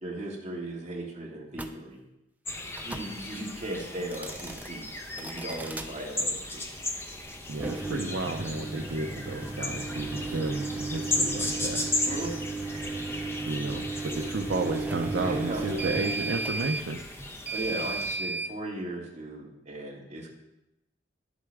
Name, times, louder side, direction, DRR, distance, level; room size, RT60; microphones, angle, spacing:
voice 1, 0.0-2.0 2.8-4.9 5.2-6.7 12.0-12.3 15.3-16.0 17.5-20.3, right 1 dB, 35° right, -3 dB, 2.0 m, -37 dB
sound 1, 1.5-1.7 2.7-3.1 4.0-4.7 5.2-5.9 7.5-18.5, right 3 dB, 10° right, 0.4 m, -35 dB
sound 2, 2.5-18.2, left 2 dB, 15° left, 0.8 m, -36 dB
voice 2, 7.5-11.9 13.5-17.0, right 2 dB, 65° right, 2 dB, 0.6 m, -32 dB
11.0 x 8.1 x 3.5 m, 0.89 s
head